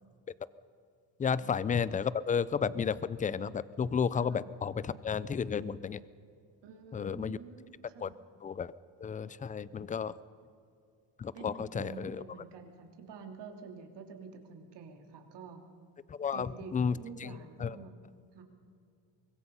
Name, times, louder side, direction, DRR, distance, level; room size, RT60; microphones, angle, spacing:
voice 1, 1.2-6.0 6.9-7.4 8.0-8.1 8.4-8.7 9.0-10.1 11.2-12.2 16.1-16.9 17.2-17.3 17.6-17.8, left 6 dB, 20° left, 18 dB, 0.4 m, -32 dB
voice 2, 6.6-8.1 11.3-15.6 16.3-18.0 18.3-18.4, right 5 dB, 60° right, 4 dB, 3.1 m, -48 dB
24.5 x 21.5 x 5.6 m, 2.4 s
cardioid pair, 145°, 46 cm